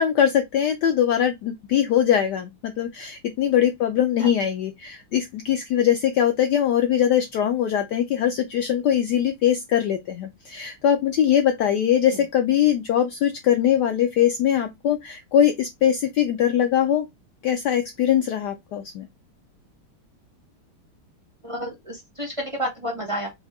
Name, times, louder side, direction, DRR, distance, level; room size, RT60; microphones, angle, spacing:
voice 1, 0.0-17.1 17.4-19.1, left 10 dB, 85° left, 0.9 m, -21 dB
voice 2, 21.4-23.3, equal, 20° right, 1.0 m, -30 dB
4.9 x 2.7 x 3.5 m
omnidirectional pair, 2.4 m